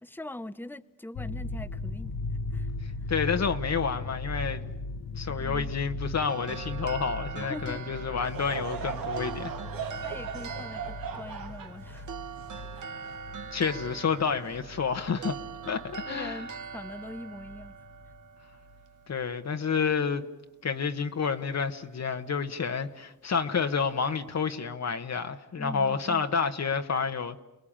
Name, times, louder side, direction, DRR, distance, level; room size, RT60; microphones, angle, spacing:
voice 1, 0.0-2.1 2.5-2.7 5.3-5.7 7.4-7.8 10.0-12.1 12.7-12.8 16.1-17.7 25.6-26.2, left 1 dB, 5° left, 0.9 m, -42 dB
sound 1, 1.1-18.2 18.5-18.8, left 2 dB, 70° left, 1.2 m, -39 dB
voice 2, 2.8-4.6 5.2-9.5 13.5-15.4 15.6-16.4 19.1-20.2 20.6-27.4, left 6 dB, 50° left, 1.3 m, -29 dB
sound 2, 6.3-19.5, right 6 dB, 65° right, 1.3 m, -43 dB
Laughter / Crowd, 8.2-13.7 14.3-14.4 15.2-15.4, right 7 dB, 90° right, 2.4 m, -39 dB
30.0 x 21.0 x 8.8 m
cardioid pair, 85°, 33 cm